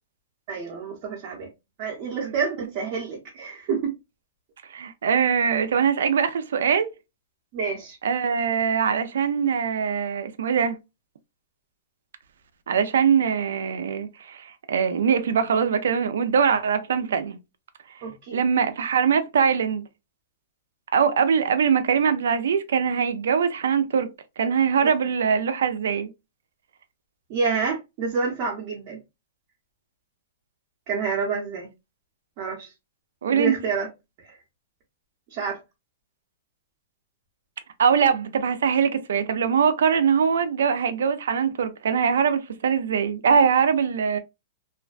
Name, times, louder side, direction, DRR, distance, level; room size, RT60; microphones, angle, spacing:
voice 1, 0.5-1.5 1.8-3.9 7.5-8.0 18.0-18.4 27.3-29.0 30.9-31.7 32.4-32.7 33.3-33.9 34.2-34.4 35.3-35.6, right 5 dB, 40° right, 0.7 m, -28 dB
voice 2, 4.7-6.9 8.0-10.8 12.7-17.4 18.3-19.8 20.9-26.1 33.2-33.6 37.8-44.2, right 7 dB, 85° right, 0.4 m, -22 dB
2.4 x 2.2 x 2.3 m
hypercardioid pair, 155°, 0 cm